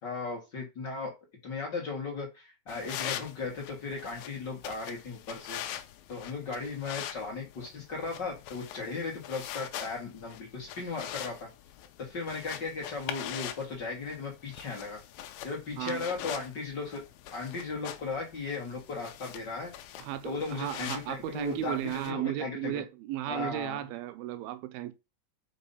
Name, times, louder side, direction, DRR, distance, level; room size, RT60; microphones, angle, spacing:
voice 1, 0.0-1.1 1.4-5.6 6.1-11.5 12.0-15.0 15.4-17.0 17.3-19.7 20.2-22.8 23.3-23.8, left 4 dB, 45° left, 1.6 m, -36 dB
sound 1, 2.7-22.1, left 11 dB, 80° left, 2.3 m, -43 dB
voice 2, 20.0-24.9, right 13 dB, 80° right, 2.5 m, -35 dB
5.5 x 5.1 x 5.5 m
omnidirectional pair, 4.5 m